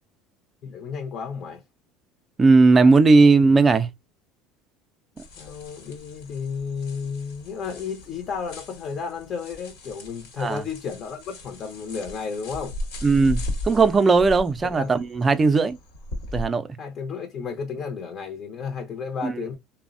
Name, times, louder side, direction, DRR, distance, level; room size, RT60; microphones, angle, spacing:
voice 1, 0.6-1.6 5.4-12.8 14.6-14.9 16.8-19.6, left 6 dB, 45° left, 0.5 m, -32 dB
voice 2, 2.4-3.9 10.4-10.6 13.0-15.8 16.3-16.7 19.2-19.4, right 4 dB, 25° right, 0.4 m, -17 dB
sound 1, 5.2-16.5, left 1 dB, 85° left, 1.0 m, -37 dB
3.2 x 2.0 x 2.4 m
supercardioid pair, 115°, 0 cm